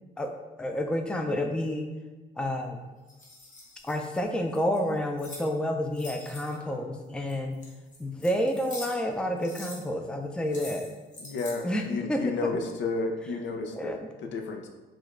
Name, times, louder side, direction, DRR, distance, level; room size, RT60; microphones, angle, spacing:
voice 1, 0.6-1.9 2.4-2.8 3.8-7.6 8.0-10.9 11.6-12.5 13.7-14.1, equal, 5° left, 4 dB, 0.4 m, -29 dB
sound 1, 3.1-5.5 5.9-6.7 7.3-9.1 9.4-9.8 10.4-11.6, left 2 dB, 40° left, 1.2 m, -44 dB
voice 2, 11.2-13.9 14.2-14.7, left 3 dB, 65° left, 4 dB, 0.6 m, -32 dB
5.0 x 2.4 x 3.6 m, 1.2 s
cardioid pair, 90°, 20 cm